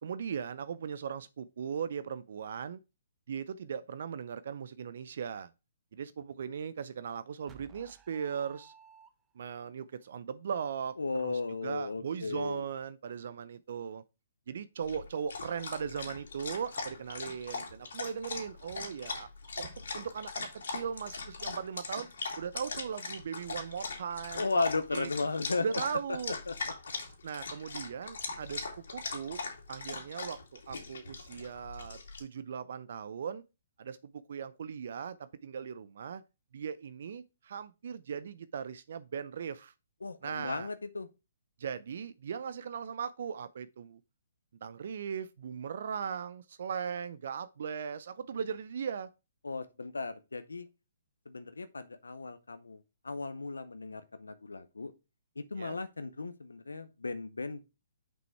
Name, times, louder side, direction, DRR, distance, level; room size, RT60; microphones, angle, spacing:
voice 1, 0.0-2.8 3.3-5.5 5.9-8.7 9.4-14.0 14.5-19.3 19.6-22.1 22.4-24.6 24.9-25.1 25.6-26.3 27.2-28.7 28.9-29.4 29.7-33.4 33.8-36.2 36.5-39.7 40.2-40.7 41.6-44.0 44.6-49.1 55.6-55.8, right 7 dB, 60° right, 0.5 m, -38 dB
sci-fi Intro, 7.5-9.6, right 7 dB, 20° right, 0.8 m, -57 dB
voice 2, 11.0-12.7 24.3-25.6 26.5-26.6 40.0-41.1 49.4-50.7 51.3-54.9 55.4-57.6, left 3 dB, 90° left, 0.7 m, -35 dB
Dog, 14.8-32.2, left 4 dB, 70° left, 2.3 m, -40 dB
6.2 x 5.4 x 4.5 m
hypercardioid pair, 135°, 0 cm